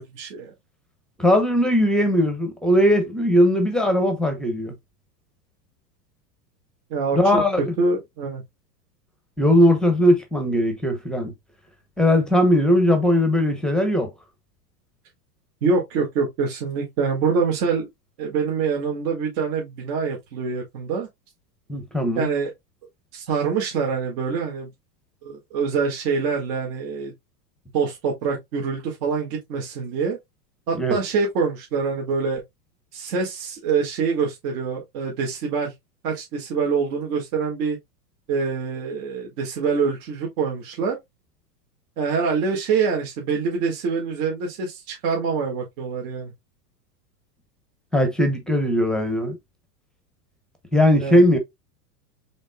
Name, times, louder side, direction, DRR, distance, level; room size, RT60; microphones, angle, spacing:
voice 1, 0.1-0.5 6.9-8.4 15.6-17.9 18.2-21.1 22.1-22.5 23.1-24.7 25.2-27.1 27.7-30.2 30.7-32.4 32.9-35.7 36.0-37.8 38.3-41.0 42.0-46.3 51.0-51.2, right 5 dB, 55° right, 1.8 m, -25 dB
voice 2, 1.2-4.7 7.1-7.7 9.4-11.3 12.0-14.1 21.7-22.3 30.7-31.0 47.9-49.4 50.7-51.4, equal, ahead, 0.7 m, -19 dB
5.1 x 3.5 x 2.2 m
supercardioid pair, 130°, 49 cm